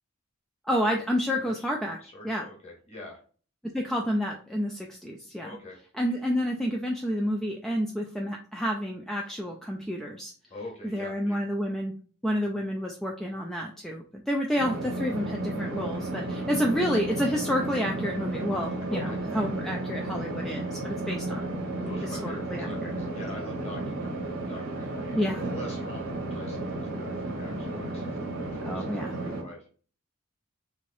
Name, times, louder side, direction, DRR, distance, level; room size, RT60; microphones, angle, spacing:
voice 1, 0.7-2.0 2.2-2.5 3.7-5.5 6.0-10.3 10.8-11.9 12.2-21.5 22.0-23.1 25.2-25.4 28.6-29.2, equal, ahead, -1 dB, 0.3 m, -29 dB
voice 2, 1.4-1.7 2.0-3.2 5.4-5.8 10.5-11.4 18.9-19.4 21.8-29.6, left 1 dB, 30° left, -1 dB, 1.4 m, -44 dB
sound 1, 14.6-29.4, right 2 dB, 75° right, 1.1 m, -33 dB
3.6 x 3.3 x 2.5 m, 0.41 s
head